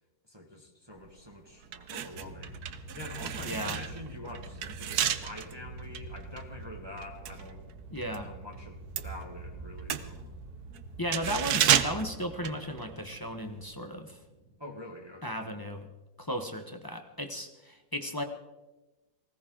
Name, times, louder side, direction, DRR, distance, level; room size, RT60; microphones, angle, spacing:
voice 1, 0.2-7.6 8.2-10.4 14.6-15.5, left 1 dB, 15° right, -1 dB, 1.7 m, -46 dB
sound 1, 1.0-1.2 1.6-8.3 8.5-13.2 13.5-13.6, right 10 dB, 65° right, 1.2 m, -32 dB
sound 2, 2.1-14.5, right 2 dB, 35° right, 3.5 m, -46 dB
voice 2, 3.4-3.8 7.9-8.3 11.0-14.2 15.2-15.9 16.2-18.2, equal, 15° left, 5 dB, 0.7 m, -35 dB
19.5 x 17.0 x 3.8 m, 1.1 s
omnidirectional pair, 2.0 m